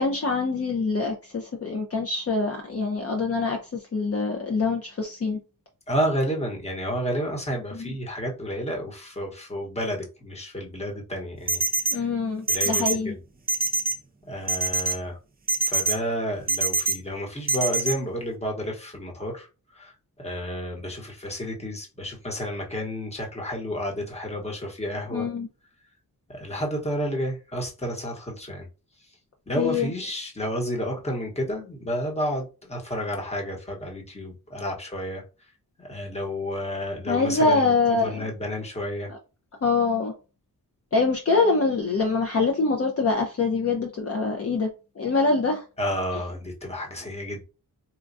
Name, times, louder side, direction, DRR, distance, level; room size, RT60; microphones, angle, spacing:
voice 1, 0.0-5.4 7.7-7.9 11.9-13.1 25.1-25.5 29.6-29.9 37.1-38.3 39.1-39.2 39.6-40.1 40.9-44.7 45.0-45.6, left 3 dB, 40° left, 2 dB, 0.7 m, -24 dB
voice 2, 5.9-12.1 12.5-13.1 14.3-15.2 15.6-19.5 19.7-25.3 26.3-28.7 29.5-35.2 35.8-39.1 45.8-47.4, equal, 15° left, 0 dB, 1.1 m, -31 dB
sound 1, 11.5-11.9 12.5-12.9 13.5-13.9 14.5-14.9 15.5-15.9 16.5-16.9 17.5-17.9, right 3 dB, 25° right, 0.5 m, -23 dB
4.4 x 2.3 x 2.6 m, 0.32 s
cardioid pair, 85°, 37 cm